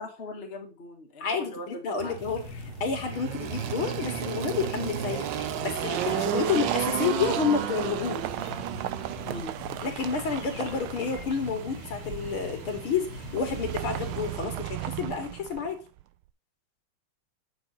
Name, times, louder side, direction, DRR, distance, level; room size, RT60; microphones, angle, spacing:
voice 1, 0.0-2.2 9.2-9.6, left 2 dB, 30° left, 1 dB, 1.8 m, -40 dB
voice 2, 1.2-2.4 2.8-5.3 5.6-8.3 9.8-15.8, left 5 dB, 75° left, 5 dB, 2.7 m, -30 dB
Engine, 2.0-9.4, right 10 dB, 65° right, 1.3 m, -32 dB
sound 1, 2.2-14.3, left 10 dB, 55° left, 1.4 m, -44 dB
sound 2, 5.3-16.0, right 14 dB, 85° right, 1.5 m, -38 dB
9.0 x 7.2 x 4.1 m, 0.30 s
omnidirectional pair, 2.4 m